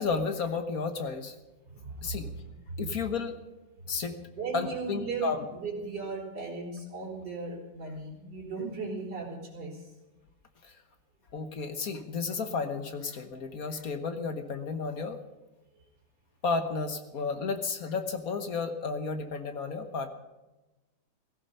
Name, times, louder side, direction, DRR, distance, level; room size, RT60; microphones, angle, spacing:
voice 1, 0.0-1.3 2.0-2.3 2.8-3.4 3.9-4.2 4.5-5.4 10.6-10.7 11.3-15.2 16.4-20.1, left 4 dB, 50° left, 7 dB, 1.3 m, -32 dB
voice 2, 1.7-2.4 2.7-2.8 3.8-3.9 4.3-9.9, right 4 dB, 50° right, -5 dB, 4.9 m, -37 dB
16.5 x 15.0 x 5.5 m, 1.1 s
omnidirectional pair, 2.4 m